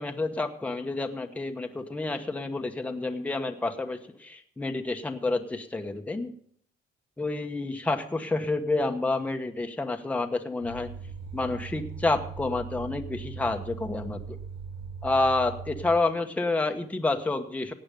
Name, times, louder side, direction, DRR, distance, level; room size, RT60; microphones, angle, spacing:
voice 1, 0.0-6.3 7.2-10.9 11.3-14.2 15.0-17.7, left 2 dB, 10° left, 5 dB, 1.1 m, -29 dB
sound 1, 10.6-15.9, right 6 dB, 90° right, 5.6 m, -40 dB
16.5 x 8.8 x 5.2 m, 0.63 s
cardioid pair, 135°, 17 cm